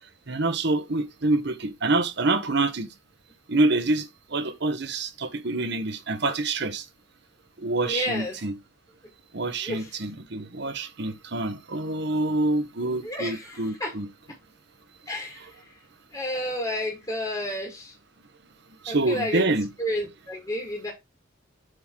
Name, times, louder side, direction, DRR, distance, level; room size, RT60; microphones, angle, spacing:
voice 1, 0.3-2.9 3.5-6.8 7.6-8.5 9.3-14.1 18.8-19.7, right 2 dB, 55° right, 1.0 m, -26 dB
voice 2, 7.8-8.4 9.6-10.0 13.0-13.9 15.1-15.7 16.1-18.0 18.9-20.9, left 1 dB, 15° left, 2.1 m, -31 dB
7.8 x 3.7 x 4.5 m
head